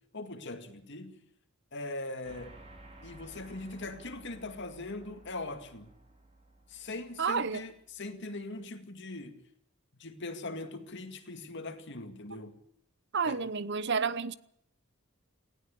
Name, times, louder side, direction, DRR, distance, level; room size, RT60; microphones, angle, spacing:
voice 1, 0.1-1.2 1.7-2.6 3.0-5.9 6.7-9.4 10.0-12.6 13.2-13.4, left 2 dB, 55° left, 2.2 m, -41 dB
sound 1, 2.2-8.0, right 1 dB, 30° right, 4.7 m, -55 dB
voice 2, 7.2-7.6 12.3-12.4 13.1-14.3, right 5 dB, 55° right, 0.9 m, -30 dB
19.5 x 16.5 x 8.4 m
head